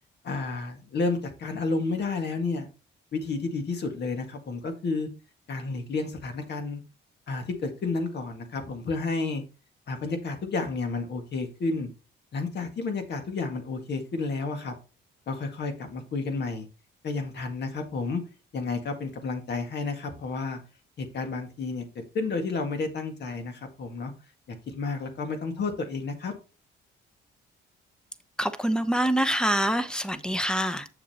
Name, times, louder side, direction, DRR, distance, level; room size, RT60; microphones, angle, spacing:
voice 1, 0.2-2.7 3.1-5.1 5.5-6.8 7.3-9.4 9.9-11.9 12.3-14.7 15.3-16.7 17.0-18.2 18.5-20.6 21.0-21.9 22.1-24.1 24.5-26.3, left 3 dB, 60° left, 1.8 m, -31 dB
voice 2, 28.4-30.9, equal, 5° left, 0.8 m, -25 dB
7.5 x 6.7 x 2.9 m
cardioid pair, 90°, 20 cm